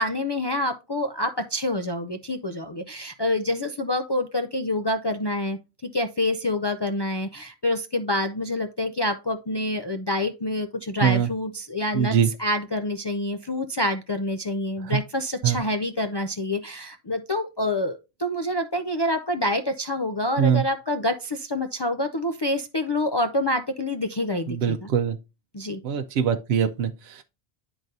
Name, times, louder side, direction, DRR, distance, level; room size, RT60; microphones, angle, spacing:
voice 1, 0.0-24.9 25.5-25.8, left 1 dB, 40° left, 0.3 m, -27 dB
voice 2, 11.9-12.3 14.8-15.0 15.4-15.6 20.4-20.6 24.5-25.2 25.8-27.2, right 8 dB, 85° right, 0.8 m, -23 dB
10.5 x 3.9 x 2.6 m
omnidirectional pair, 1.1 m